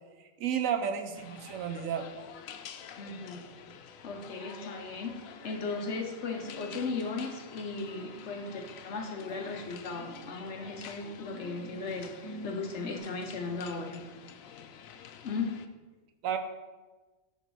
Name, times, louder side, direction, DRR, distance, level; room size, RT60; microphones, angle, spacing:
voice 1, 0.4-2.1 16.2-16.4, right 8 dB, 85° right, 7 dB, 1.0 m, -31 dB
sound 1, 1.1-15.7, left 8 dB, 85° left, 1.0 m, -49 dB
voice 2, 3.0-3.4 4.0-14.0 14.6-14.7 15.2-15.6, left 4 dB, 60° left, 3 dB, 1.0 m, -36 dB
sound 2, 5.0-6.1 6.4-13.0, right 3 dB, 15° left, 1.3 m, -50 dB
7.0 x 3.9 x 6.1 m, 1.2 s
omnidirectional pair, 1.4 m